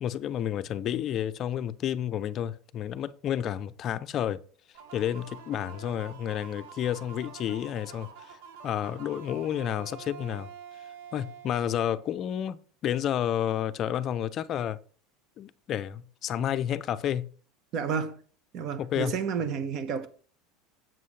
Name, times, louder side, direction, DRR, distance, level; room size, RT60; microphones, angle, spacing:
voice 1, 0.0-4.4 4.9-8.4 8.6-10.5 11.1-12.6 12.8-14.8 15.4-17.3 18.8-19.1, left 10 dB, 35° left, 0.5 m, -30 dB
sound 1, 4.7-12.3, right 7 dB, 80° right, 1.5 m, -47 dB
voice 2, 17.7-18.2 18.5-20.1, right 6 dB, 45° right, 1.1 m, -31 dB
7.7 x 7.5 x 3.2 m
supercardioid pair, 140°, 0 cm